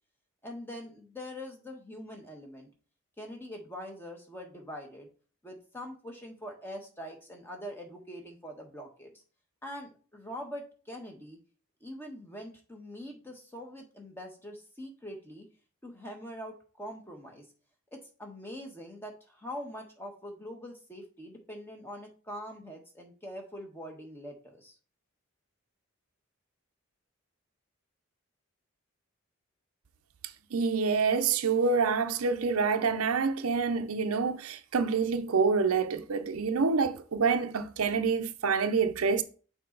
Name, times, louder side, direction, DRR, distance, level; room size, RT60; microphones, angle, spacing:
voice 1, 0.4-2.7 3.2-5.1 5.4-9.1 9.6-11.4 11.8-15.5 15.8-17.4 17.9-24.7, equal, 10° left, 1.2 m, -43 dB
voice 2, 30.5-39.2, right 5 dB, 85° right, 0.6 m, -27 dB
6.7 x 4.3 x 3.9 m
head